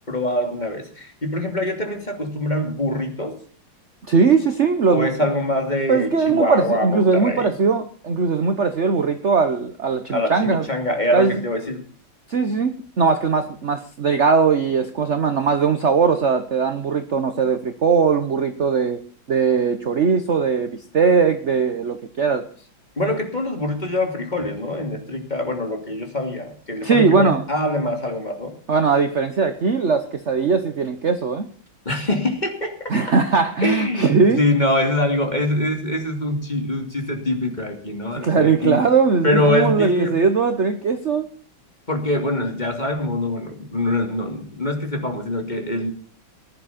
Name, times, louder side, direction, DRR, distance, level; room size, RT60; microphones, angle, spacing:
voice 1, 0.1-3.4 4.9-7.5 10.1-11.9 23.0-28.6 31.8-32.9 33.6-38.8 39.2-40.2 41.9-45.9, left 1 dB, 20° left, 4 dB, 2.8 m, -24 dB
voice 2, 4.1-5.1 5.9-10.6 11.1-11.4 12.3-19.0 19.3-22.4 26.8-27.4 28.7-31.5 32.9-34.4 38.1-41.3, right 5 dB, 45° right, 8 dB, 1.1 m, -19 dB
19.0 x 11.5 x 4.3 m, 0.43 s
omnidirectional pair, 2.2 m